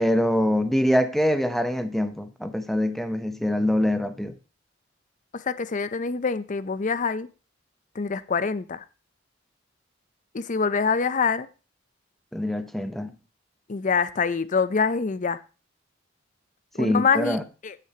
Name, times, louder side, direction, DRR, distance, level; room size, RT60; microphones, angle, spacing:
voice 1, 0.0-4.3 12.3-13.1 16.8-17.4, left 1 dB, ahead, 0.7 m, -24 dB
voice 2, 5.3-7.3 7.9-8.8 10.3-11.5 13.7-15.4 16.7-17.8, left 5 dB, 40° left, 0.5 m, -25 dB
15.0 x 6.7 x 2.8 m
head